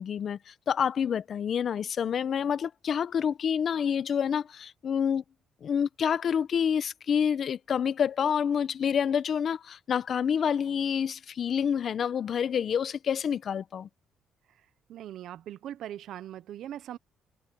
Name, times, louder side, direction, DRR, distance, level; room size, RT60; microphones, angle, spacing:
voice 1, 0.0-5.2 5.6-13.9, left 7 dB, 55° left, 1.0 m, -28 dB
voice 2, 14.9-17.0, right 11 dB, 75° right, 0.9 m, -40 dB
cardioid pair, 90°, 0 cm